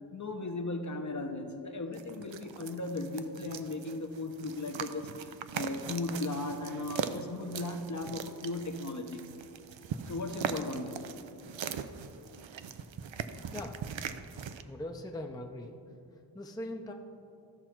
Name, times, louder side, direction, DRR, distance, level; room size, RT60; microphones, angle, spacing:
voice 1, 0.1-9.2 10.1-11.0, left 2 dB, 40° left, 4 dB, 0.8 m, -37 dB
sound 1, 1.9-14.6, right 7 dB, 80° right, 0.6 m, -40 dB
voice 2, 13.5-14.0 14.6-15.8 16.1-16.9, left 1 dB, 10° left, 3 dB, 0.6 m, -41 dB
14.5 x 6.0 x 4.5 m, 2.5 s
wide cardioid pair, 95°, 45 cm